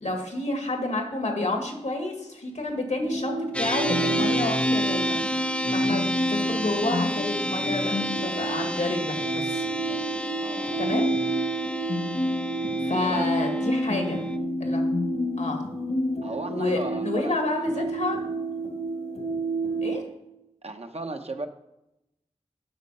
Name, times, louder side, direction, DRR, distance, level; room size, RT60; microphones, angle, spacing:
voice 1, 0.0-5.3 5.7-9.6 10.8-11.1 12.8-14.2 14.6-15.0 15.4-15.6 16.5-18.2 19.8-20.0, left 2 dB, 90° left, 2 dB, 1.9 m, -29 dB
sound 1, 3.0-20.0, right 1 dB, 70° left, 1.5 m, -29 dB
sound 2, 3.5-14.4, equal, 10° left, 0.7 m, -31 dB
voice 2, 10.4-10.8 12.9-13.3 16.2-17.9 20.6-21.5, right 2 dB, 60° right, 5 dB, 0.9 m, -36 dB
10.0 x 6.5 x 5.5 m, 0.88 s
wide cardioid pair, 45°, 12 cm